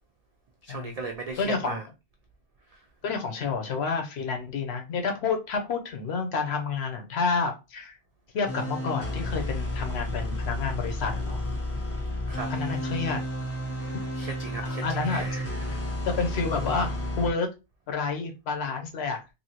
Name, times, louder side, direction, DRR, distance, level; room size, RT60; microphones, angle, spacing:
voice 1, 0.6-1.9 12.3-12.5 13.8-15.7, right 3 dB, 70° right, 0.3 m, -37 dB
voice 2, 1.4-1.8 3.0-8.0 8.3-11.4 12.5-13.2 14.6-15.4 15.7-17.5 17.9-19.2, left 4 dB, 70° left, 0.9 m, -29 dB
sound 1, 8.5-17.3, left 1 dB, 20° left, 0.4 m, -31 dB
3.0 x 2.6 x 2.7 m
omnidirectional pair, 1.2 m